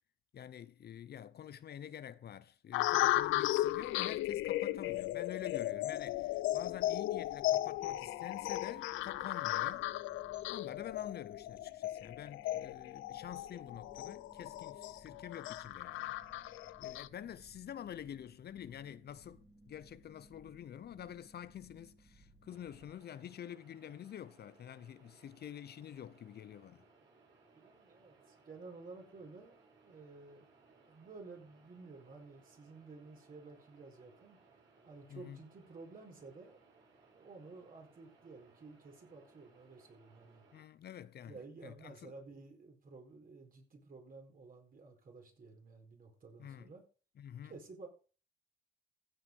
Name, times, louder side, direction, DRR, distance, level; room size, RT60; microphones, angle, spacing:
voice 1, 0.3-9.9 10.5-16.2 16.8-26.8 35.1-35.4 40.5-42.1 46.4-46.7 47.2-47.6, left 10 dB, 55° left, 0.7 m, -48 dB
sound 1, 2.7-17.1, left 15 dB, 90° left, 0.5 m, -36 dB
sound 2, 3.0-22.9, right 1 dB, 10° right, 2.6 m, -62 dB
sound 3, 22.5-40.6, right 3 dB, 70° right, 7.4 m, -66 dB
voice 2, 27.5-29.6 29.8-30.5 30.9-34.4 34.8-36.6 37.1-40.4 41.2-46.8 47.4-47.9, right 3 dB, 45° right, 4.5 m, -53 dB
15.5 x 5.8 x 5.4 m
cardioid pair, 90°, 20 cm